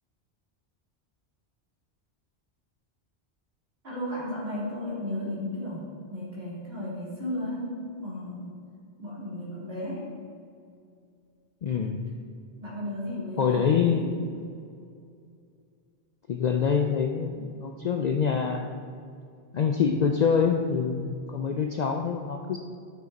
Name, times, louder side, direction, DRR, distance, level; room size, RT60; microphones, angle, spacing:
voice 1, 3.8-8.5 9.0-10.1 12.5-14.2, left 1 dB, 60° right, -7 dB, 3.1 m, -34 dB
voice 2, 11.6-12.1 13.4-14.1 16.3-18.7 19.5-22.6, left 6 dB, 55° left, 4 dB, 0.5 m, -25 dB
11.5 x 6.5 x 4.0 m, 2.3 s
omnidirectional pair, 1.1 m